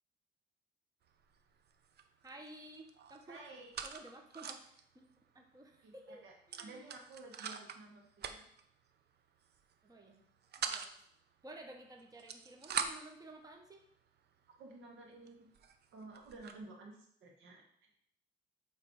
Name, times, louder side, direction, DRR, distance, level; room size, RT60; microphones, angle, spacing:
sound 1, 1.1-1.4 1.6-2.5 2.7-4.8 5.2-5.3 5.5-5.7 6.5-7.8 8.2-8.6 9.4-9.7 10.1-10.9 12.0-13.2 13.9-14.0 14.6-14.7 15.3-15.4 15.5-16.6, right 7 dB, 55° right, 0.6 m, -42 dB
voice 1, 2.2-3.4 3.8-5.1 5.3-6.8 9.8-10.2 10.6-10.9 11.4-13.8, right 2 dB, 20° right, 3 dB, 1.0 m, -54 dB
voice 2, 3.2-3.7 5.8-8.4 14.6-15.5 15.9-17.6, right 2 dB, 80° right, 1 dB, 1.6 m, -53 dB
8.0 x 3.3 x 4.7 m, 0.69 s
cardioid pair, 90°, 20 cm